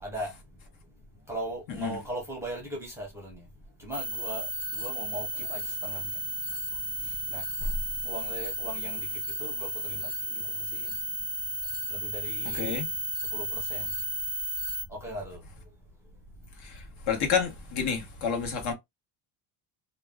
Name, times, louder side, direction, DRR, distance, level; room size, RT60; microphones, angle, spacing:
voice 1, 0.0-0.3 1.3-3.4 3.8-6.1 7.0-7.7 8.0-10.4 10.7-10.9 11.9-12.8 13.3-13.9 14.9-15.4, right 1 dB, 5° right, 0.7 m, -38 dB
sound 1, 3.9-14.8, right 1 dB, 40° left, 0.7 m, -33 dB
voice 2, 12.5-12.9 16.6-16.8 17.1-18.7, left 6 dB, 60° left, 1.2 m, -29 dB
2.6 x 2.2 x 3.4 m
cardioid pair, 170°, 43 cm